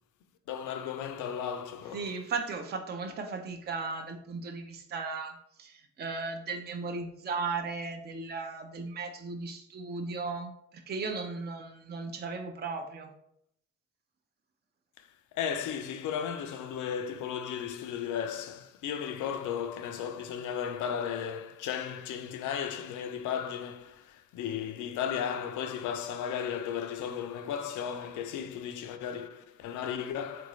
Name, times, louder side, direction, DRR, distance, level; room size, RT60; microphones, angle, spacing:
voice 1, 0.5-2.1 15.0-15.1 15.3-30.5, left 8 dB, 80° left, 0.5 m, -35 dB
voice 2, 1.9-13.1, right 4 dB, 35° right, 0.5 m, -36 dB
3.7 x 2.5 x 3.1 m
cardioid pair, 90°, 30 cm